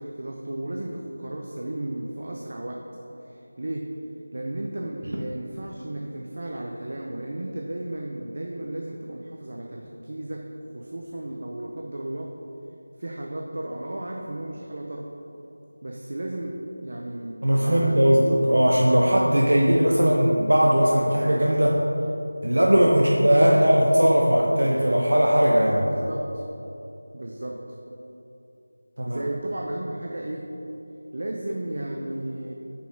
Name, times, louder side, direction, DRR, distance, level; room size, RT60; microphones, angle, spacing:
voice 1, 0.0-2.9 3.2-4.0 4.3-12.4 13.0-15.2 15.8-18.0 19.3-19.4 22.9-23.7 25.8-26.4 27.1-27.8 29.1-30.6 31.1-32.5, right 1 dB, 35° right, 0 dB, 0.5 m, -34 dB
voice 2, 17.4-21.8 22.4-25.9 29.0-29.2, equal, 90° right, -2 dB, 0.9 m, -19 dB
8.1 x 5.3 x 5.1 m, 3.0 s
figure-of-eight pair, 180°, 0 cm